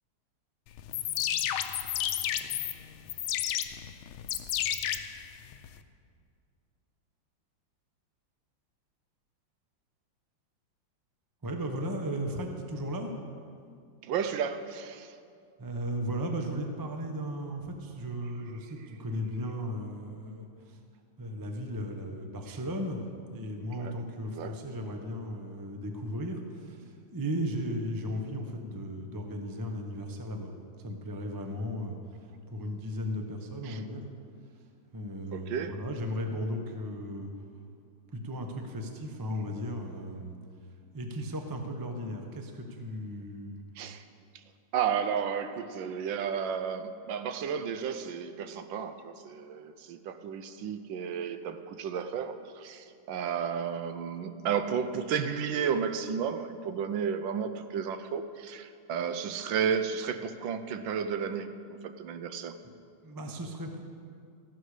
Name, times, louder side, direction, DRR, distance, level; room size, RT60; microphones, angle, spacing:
sound 1, 0.8-5.8, left 11 dB, 80° left, 1.4 m, -32 dB
voice 1, 11.4-13.1 15.6-20.8 21.2-32.0 32.5-34.0 34.9-37.3 38.1-40.3 40.9-43.6 63.0-63.8, equal, 25° right, 4 dB, 0.5 m, -36 dB
voice 2, 14.0-15.1 22.5-22.6 23.7-23.9 24.3-24.5 33.6-33.8 35.3-35.8 43.8-44.0 44.7-62.6, right 7 dB, 75° right, 10 dB, 1.3 m, -33 dB
14.5 x 12.0 x 4.9 m, 2.3 s
omnidirectional pair, 2.3 m